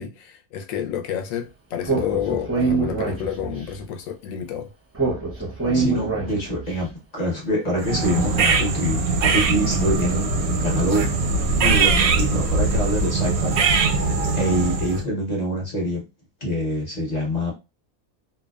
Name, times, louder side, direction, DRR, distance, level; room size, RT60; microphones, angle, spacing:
voice 1, 0.0-4.7, left 9 dB, 70° left, 0.9 m, -30 dB
Speech, 1.8-3.7 4.9-6.7, right 4 dB, 20° right, 0.4 m, -24 dB
voice 2, 5.7-6.9 7.1-11.1 11.4-13.6 13.9-14.0 14.3-16.0 16.4-17.5, equal, 40° left, 0.6 m, -25 dB
sound 1, 7.8-15.1, right 4 dB, 85° right, 1.1 m, -21 dB
2.6 x 2.2 x 2.3 m
omnidirectional pair, 1.5 m